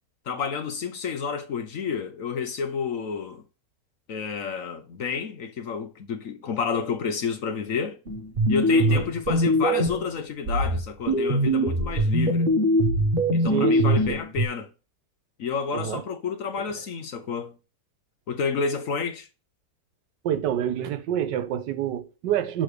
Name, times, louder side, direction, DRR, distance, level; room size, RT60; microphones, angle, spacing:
voice 1, 0.3-3.4 4.1-8.0 8.5-12.5 13.3-14.7 15.4-17.5 18.3-19.3, left 6 dB, 60° left, 1.0 m, -30 dB
sound 1, 8.1-10.1 10.5-14.5, equal, 40° right, 1.0 m, -22 dB
voice 2, 8.7-9.0 13.5-14.0 15.7-16.0 16.7-16.8 20.2-22.6, right 10 dB, 80° right, 1.4 m, -27 dB
6.3 x 3.8 x 5.0 m
omnidirectional pair, 1.9 m